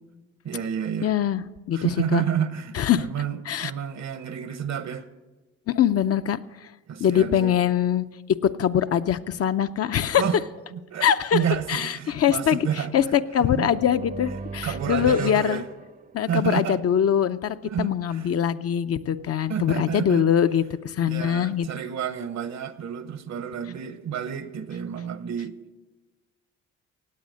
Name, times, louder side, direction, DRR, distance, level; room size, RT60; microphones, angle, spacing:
voice 1, 0.4-1.1 1.7-5.1 6.9-7.5 10.2-10.4 10.7-12.9 13.5-13.7 14.6-15.6 16.3-16.8 17.6-18.3 19.2-20.3 21.1-25.6, right 8 dB, 65° right, 1.1 m, -30 dB
voice 2, 1.0-1.4 1.7-2.2 2.7-3.0 3.5-3.7 5.7-6.4 7.0-8.0 8.6-10.2 11.0-11.4 11.7-12.7 12.9-15.6 16.1-21.7, left 9 dB, 50° left, 0.6 m, -23 dB
sound 1, 13.4-16.4, right 5 dB, 30° right, 0.7 m, -38 dB
17.0 x 8.9 x 6.4 m
cardioid pair, 90°, 30 cm